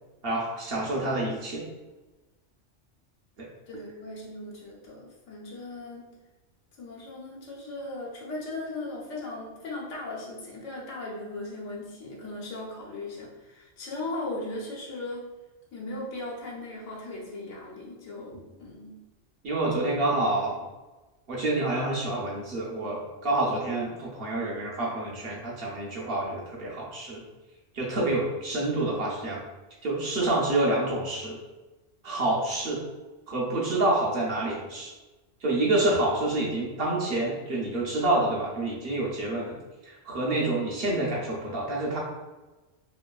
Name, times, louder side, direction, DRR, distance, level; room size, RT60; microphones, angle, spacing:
voice 1, 0.2-1.6 3.4-3.5 19.4-20.6 21.3-27.2 27.7-29.4 29.8-31.4 32.0-32.8 33.3-34.9 35.4-39.5 39.8-42.0, right 2 dB, 55° right, -4 dB, 0.8 m, -27 dB
voice 2, 3.7-6.1 6.8-15.2 15.7-19.0, left 2 dB, 80° left, -4 dB, 1.1 m, -38 dB
2.9 x 2.6 x 2.3 m, 1.2 s
omnidirectional pair, 1.3 m